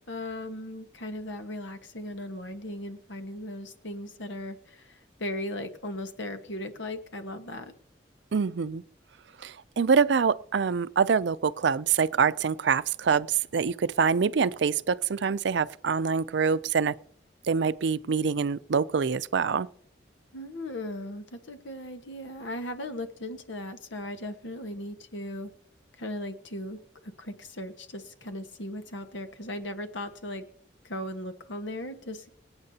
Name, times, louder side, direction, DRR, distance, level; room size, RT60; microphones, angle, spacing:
voice 1, 0.1-7.7 20.3-25.5 26.0-30.4 30.8-32.3, left 1 dB, 85° left, 1.4 m, -37 dB
voice 2, 8.3-8.8 9.4-16.9 17.5-19.7, right 6 dB, 75° right, 0.4 m, -25 dB
25.5 x 8.7 x 2.8 m
head